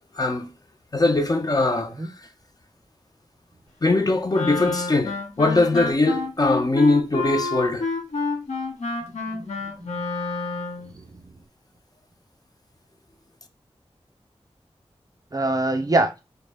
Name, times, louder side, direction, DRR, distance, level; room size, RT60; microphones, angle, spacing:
voice 1, 0.1-0.5 0.9-1.9 3.8-7.9, left 2 dB, 35° left, 0.4 m, -21 dB
Wind instrument woodwind instrument, 4.3-10.9, left 3 dB, 85° left, 0.7 m, -29 dB
voice 2, 9.0-9.5 9.8-10.0 10.6-11.4 15.3-16.1, right 2 dB, 35° right, 0.4 m, -26 dB
2.0 x 2.0 x 3.2 m
wide cardioid pair, 55°, 11 cm